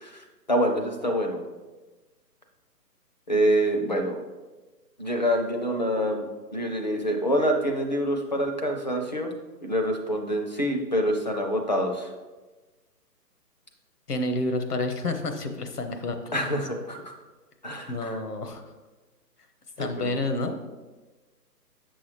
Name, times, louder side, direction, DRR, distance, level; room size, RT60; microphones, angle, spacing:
voice 1, 0.0-1.4 3.3-4.2 5.0-6.3 6.5-9.3 9.6-12.1 16.3-17.1 17.6-18.2 19.8-20.2, equal, 30° left, 3 dB, 0.5 m, -26 dB
voice 2, 14.1-16.5 17.9-18.6 19.8-20.6, left 2 dB, 70° left, 6 dB, 1.0 m, -29 dB
7.9 x 6.2 x 3.2 m, 1.2 s
figure-of-eight pair, 140°, 49 cm